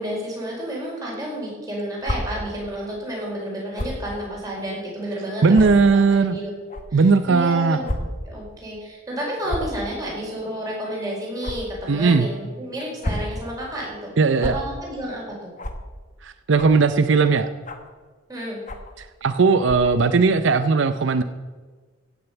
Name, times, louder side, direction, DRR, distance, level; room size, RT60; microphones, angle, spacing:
voice 1, 0.0-6.5 6.9-7.9 8.2-14.1 14.4-15.5 18.3-18.6, equal, 20° right, -3 dB, 4.9 m, -31 dB
sound 1, 2.0-2.2 3.7-4.0 4.7-4.8 5.5-5.6 6.7-6.8 7.8-8.0 8.3-8.4 9.4-9.7 11.4-11.6 12.8-13.3 14.4-14.5 15.6-15.8 16.5-16.8 17.6-17.9 18.7-18.9 19.6-19.9, left 1 dB, 40° left, 1.4 m, -29 dB
voice 2, 5.4-6.4 6.9-7.8 11.9-12.3 14.2-14.5 16.2-17.5 19.0-21.2, right 4 dB, 70° right, 10 dB, 0.6 m, -18 dB
16.0 x 6.8 x 8.1 m, 1.4 s
head